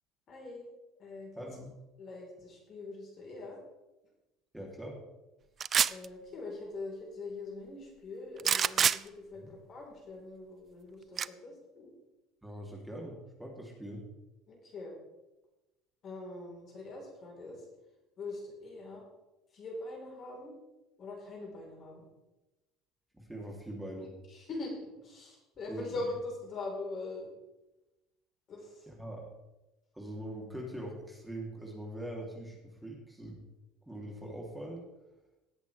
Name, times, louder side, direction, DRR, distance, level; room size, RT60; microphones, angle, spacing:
voice 1, 0.3-0.6 1.0-1.5 2.0-3.6 5.9-11.9 14.5-14.9 16.0-17.6 18.2-19.0 19.5-20.5 21.0-22.1 24.3-27.3 28.5-28.8, left 2 dB, 45° left, -2 dB, 4.6 m, -42 dB
voice 2, 1.4-1.7 4.5-5.0 9.3-9.5 12.4-14.1 23.1-24.1 25.7-26.1 28.9-29.2 29.9-33.4 33.9-34.8, right 1 dB, 10° right, -2 dB, 3.5 m, -42 dB
sound 1, 5.6-6.0 8.4-9.0 11.2-11.3, right 8 dB, 40° right, 0.3 m, -26 dB
18.0 x 8.1 x 3.6 m, 1.0 s
hypercardioid pair, 70°, 0 cm